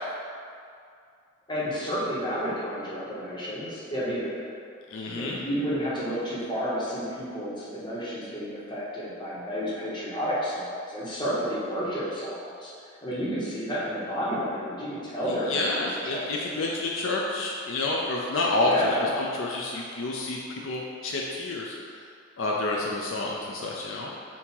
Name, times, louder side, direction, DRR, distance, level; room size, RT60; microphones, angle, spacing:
voice 1, 1.5-4.6 5.0-12.7 13.0-16.5 18.6-19.1, equal, 25° left, -8 dB, 1.5 m, -31 dB
voice 2, 4.9-5.4 15.5-21.7 22.4-24.1, left 2 dB, 70° left, -2 dB, 0.5 m, -29 dB
7.1 x 2.9 x 4.6 m, 2.3 s
head